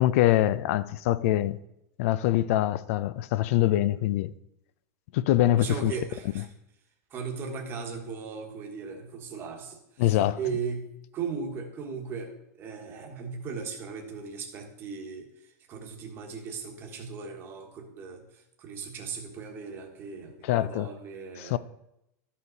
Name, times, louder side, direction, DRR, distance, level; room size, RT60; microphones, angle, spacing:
voice 1, 0.0-1.6 2.0-4.3 5.1-5.9 6.4-6.5 10.0-10.4 20.4-20.9 21.4-21.6, left 14 dB, 50° left, 0.4 m, -24 dB
voice 2, 5.5-6.5 7.1-10.9 11.1-21.6, right 5 dB, 25° right, 1.3 m, -37 dB
12.5 x 5.7 x 4.0 m
supercardioid pair, 170°, 10 cm